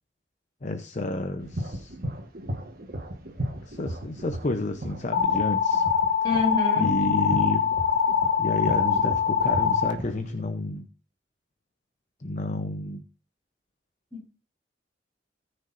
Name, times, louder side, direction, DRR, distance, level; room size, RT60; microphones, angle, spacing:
voice 1, 0.6-2.0 3.6-5.8 6.7-7.7 8.4-10.9 12.2-13.0, left 2 dB, 45° left, 8 dB, 0.8 m, -30 dB
sound 1, 1.4-10.4, right 1 dB, 55° right, 1.5 m, -36 dB
sound 2, 5.1-9.9, left 7 dB, 80° left, 1.3 m, -23 dB
voice 2, 6.2-7.3 14.1-14.3, left 3 dB, 25° left, -3 dB, 6.6 m, -29 dB
19.0 x 6.5 x 2.6 m, 0.34 s
head